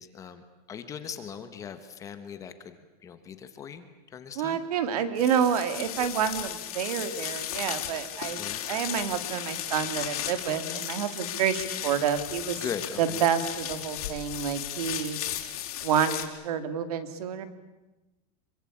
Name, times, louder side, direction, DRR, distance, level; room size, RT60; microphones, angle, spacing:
voice 1, 0.0-2.7 3.0-4.6 8.4-8.7 10.5-10.9 12.6-13.2, left 7 dB, 15° left, 9 dB, 1.2 m, -40 dB
voice 2, 4.4-12.6 13.0-15.2 15.8-17.4, right 8 dB, 80° right, 10 dB, 2.8 m, -28 dB
sound 1, 5.2-16.2, left 11 dB, 80° left, 4.4 m, -35 dB
25.5 x 23.5 x 8.6 m, 1.1 s
supercardioid pair, 180°, 19 cm